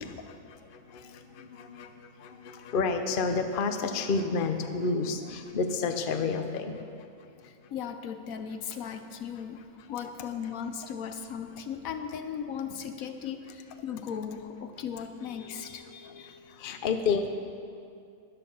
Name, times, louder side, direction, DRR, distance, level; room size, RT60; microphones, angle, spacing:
voice 1, 0.0-7.1 7.4-7.5 9.9-10.1 13.9-14.0 16.0-17.3, left 4 dB, 45° left, 7 dB, 0.8 m, -31 dB
voice 2, 7.4-9.6 9.9-16.4, left 7 dB, 70° left, 8 dB, 1.1 m, -37 dB
14.0 x 10.5 x 5.5 m, 2.5 s
omnidirectional pair, 1.6 m